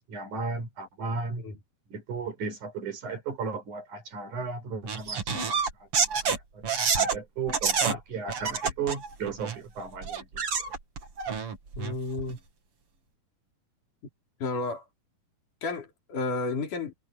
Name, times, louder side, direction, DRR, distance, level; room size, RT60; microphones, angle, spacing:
voice 1, 0.0-1.4 1.9-6.6 6.9-10.4, right 4 dB, 70° right, 6.3 m, -35 dB
sound 1, 4.9-7.2 7.5-7.9 8.3-9.6 10.0-12.3, right 5 dB, 45° right, 3.2 m, -28 dB
voice 2, 11.8-12.4 14.4-14.9 15.6-16.9, left 3 dB, 80° left, 5.2 m, -32 dB
omnidirectional pair, 3.6 m